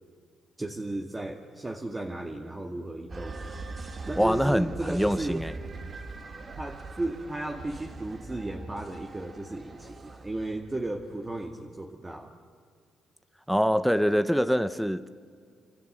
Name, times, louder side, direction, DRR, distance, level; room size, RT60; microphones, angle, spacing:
voice 1, 0.6-3.6 4.1-5.5 6.6-12.3, right 2 dB, 20° right, 1.9 m, -35 dB
sound 1, 3.1-11.3, right 3 dB, 35° right, 2.3 m, -41 dB
voice 2, 4.2-5.5 13.5-15.1, equal, ahead, 0.9 m, -24 dB
26.5 x 26.5 x 7.9 m
cardioid pair, 90°, 0 cm